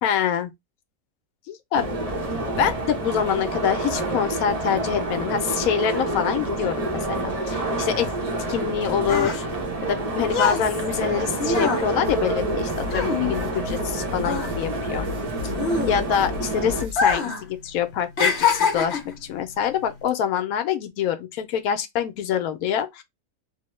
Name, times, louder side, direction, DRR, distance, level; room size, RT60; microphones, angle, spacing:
voice 1, 0.0-0.5 1.5-1.9 2.6-8.1 8.5-9.5 9.8-15.0 15.9-23.0, left 8 dB, 80° left, 1.0 m, -25 dB
sound 1, 1.7-16.8, right 2 dB, 35° right, 0.7 m, -28 dB
sound 2, 8.6-13.9 14.2-16.3 16.9-17.5 17.7-19.2 19.9-20.1, left 5 dB, 55° left, 0.9 m, -25 dB
sound 3, 12.0-17.1, left 6 dB, 70° right, 1.1 m, -36 dB
2.9 x 2.1 x 3.0 m
omnidirectional pair, 1.5 m